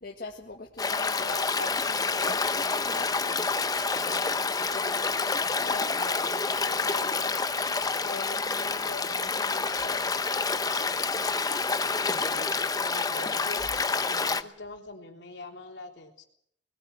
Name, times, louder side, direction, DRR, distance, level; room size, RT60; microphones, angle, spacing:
voice 1, 0.0-3.4 3.9-7.4 8.0-10.1, left 2 dB, 55° left, 1 dB, 1.7 m, -42 dB
Stream, 0.8-14.4, left 4 dB, 20° left, 0.8 m, -28 dB
voice 2, 11.9-12.5 12.8-13.6 14.0-16.2, left 2 dB, 70° left, 2 dB, 3.4 m, -44 dB
21.0 x 17.5 x 7.9 m, 0.70 s
head